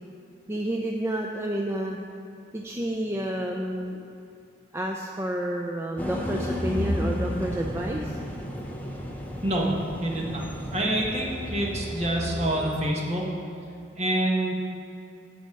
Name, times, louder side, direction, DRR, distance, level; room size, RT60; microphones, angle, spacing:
voice 1, 0.5-2.0 2.5-4.0 4.7-8.2, right 1 dB, 15° right, 0 dB, 0.4 m, -30 dB
sound 1, 6.0-12.8, left 1 dB, 10° left, 0.8 m, -32 dB
voice 2, 9.4-9.7 10.0-10.4 10.7-13.2 14.0-14.5, right 1 dB, 35° right, -2 dB, 1.4 m, -26 dB
11.0 x 4.2 x 7.6 m, 2.5 s
head